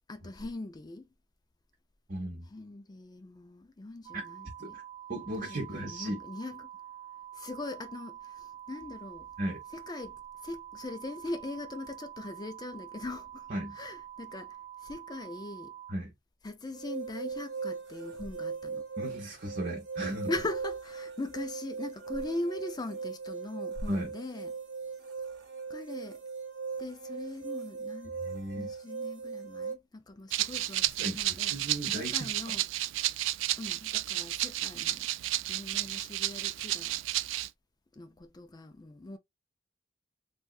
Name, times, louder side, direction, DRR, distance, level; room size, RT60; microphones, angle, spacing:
voice 1, 0.1-1.1 2.4-4.8 5.4-6.7 7.3-9.3 9.7-15.8 16.4-18.8 20.3-24.5 25.7-26.2 26.8-28.2 28.5-31.5 31.9-32.7 33.6-35.1 35.5-37.0 37.9-39.2, left 2 dB, 20° left, 0.4 m, -41 dB
voice 2, 2.1-2.5 4.1-4.2 4.7-4.8 5.1-6.2 9.4-9.6 13.5-13.8 15.9-16.1 19.0-20.3 23.9-24.1 28.2-28.7 31.0-31.2 31.5-32.5, right 1 dB, 45° right, 1.1 m, -35 dB
sound 1, 4.0-15.9, right 11 dB, 25° right, 0.9 m, -47 dB
sound 2, 16.7-29.8, right 5 dB, 65° right, 0.8 m, -39 dB
Rattle (instrument), 30.3-37.5, right 15 dB, 85° right, 0.3 m, -32 dB
3.4 x 2.6 x 2.3 m
head